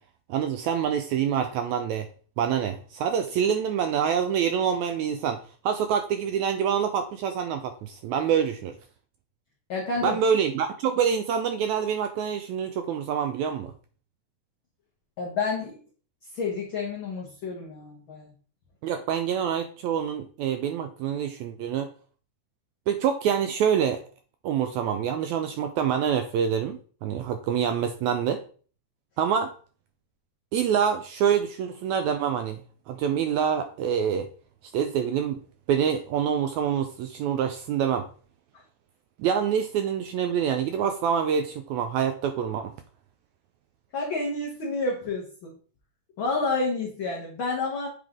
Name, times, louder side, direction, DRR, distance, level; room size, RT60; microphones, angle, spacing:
voice 1, 0.3-2.1 2.4-8.8 10.0-13.7 18.8-21.9 22.9-24.0 24.4-28.4 29.2-29.5 30.5-32.6 32.9-34.3 34.7-35.4 35.7-38.1 39.2-42.7, right 8 dB, 80° right, 7 dB, 1.7 m, -26 dB
voice 2, 9.7-10.2 15.2-15.8 16.3-18.3 43.9-45.5 46.2-47.9, left 3 dB, 60° left, -2 dB, 1.4 m, -29 dB
7.9 x 3.4 x 3.6 m, 0.41 s
omnidirectional pair, 3.7 m